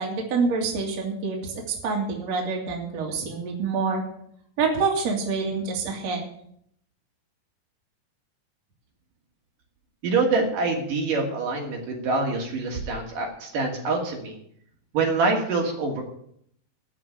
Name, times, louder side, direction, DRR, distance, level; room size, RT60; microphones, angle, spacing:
voice 1, 0.0-4.0 4.6-6.2, right 4 dB, 50° right, 0 dB, 3.3 m, -26 dB
voice 2, 10.0-14.3 14.9-16.0, right 3 dB, 70° right, 0 dB, 4.0 m, -25 dB
14.0 x 6.0 x 9.9 m, 0.68 s
omnidirectional pair, 4.0 m